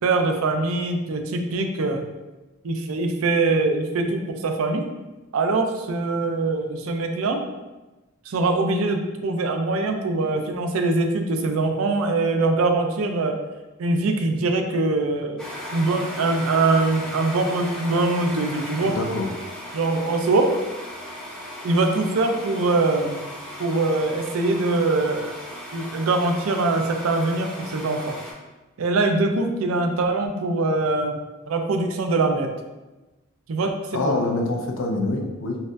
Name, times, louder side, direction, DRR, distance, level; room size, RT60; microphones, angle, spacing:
voice 1, 0.0-2.0 2.6-4.8 5.3-7.4 8.3-13.3 13.8-15.4 15.7-19.0 19.7-20.5 21.6-23.2 23.6-25.3 25.7-28.2 28.8-31.2 31.5-32.5 33.5-33.7 34.0-34.2, right 3 dB, 70° right, 5 dB, 0.4 m, -23 dB
sound 1, 15.4-28.3, left 1 dB, 5° left, 0.6 m, -36 dB
voice 2, 18.8-19.3 33.9-35.6, left 2 dB, 65° left, 2 dB, 0.5 m, -25 dB
4.0 x 2.5 x 2.5 m, 1.1 s
head